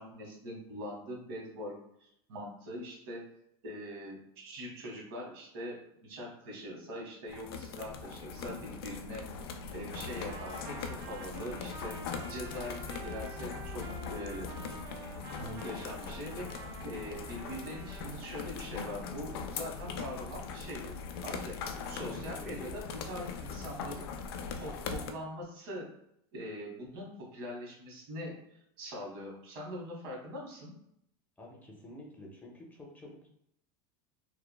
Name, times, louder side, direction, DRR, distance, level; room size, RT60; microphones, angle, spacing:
voice 1, 0.0-3.2 3.6-9.3 9.7-12.0 12.3-14.5 15.3-21.0 21.2-21.6 21.9-24.1 24.6-25.9 26.3-28.4 28.8-30.7, equal, 75° right, -2 dB, 1.1 m, -42 dB
sound 1, 7.3-25.1, left 5 dB, 90° left, 0.4 m, -41 dB
Trumpet, 9.9-18.1, right 4 dB, 35° right, 0.4 m, -49 dB
voice 2, 21.6-22.7 31.4-33.3, left 1 dB, 15° left, -2 dB, 0.5 m, -49 dB
3.1 x 2.1 x 2.2 m, 0.75 s
supercardioid pair, 135°, 12 cm